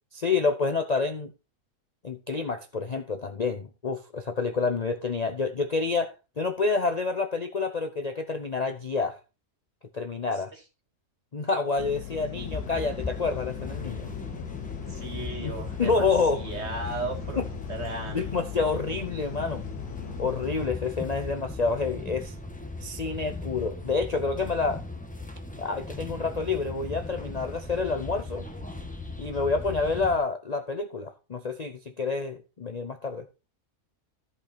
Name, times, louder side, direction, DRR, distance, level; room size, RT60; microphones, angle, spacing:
voice 1, 0.1-1.3 2.0-9.2 9.9-10.5 11.3-14.1 15.3-15.5 15.8-16.4 17.4-17.5 18.0-19.6 20.2-22.3 22.8-24.8 25.6-28.4 29.2-33.3, left 4 dB, 40° left, 0.6 m, -28 dB
sound 1, 11.8-20.7, left 11 dB, 85° left, 1.4 m, -39 dB
sound 2, 12.4-30.2, left 2 dB, 5° left, 1.1 m, -38 dB
voice 2, 14.9-16.0 16.3-17.4 17.7-18.5, right 2 dB, 45° right, 2.4 m, -35 dB
13.5 x 5.4 x 4.3 m
omnidirectional pair, 1.6 m